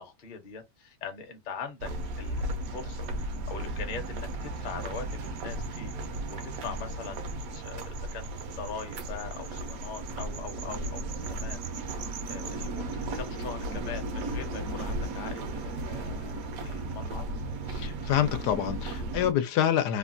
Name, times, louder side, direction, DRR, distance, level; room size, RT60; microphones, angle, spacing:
voice 1, 0.0-3.1 3.5-5.9 6.3-11.6 11.9-12.0 12.3-16.3 16.6-17.4, left 5 dB, 45° left, 0.7 m, -41 dB
sound 1, 1.8-19.3, right 2 dB, 70° right, 1.0 m, -35 dB
voice 2, 17.7-20.0, left 10 dB, 85° left, 1.2 m, -27 dB
3.1 x 2.2 x 2.5 m
omnidirectional pair, 1.7 m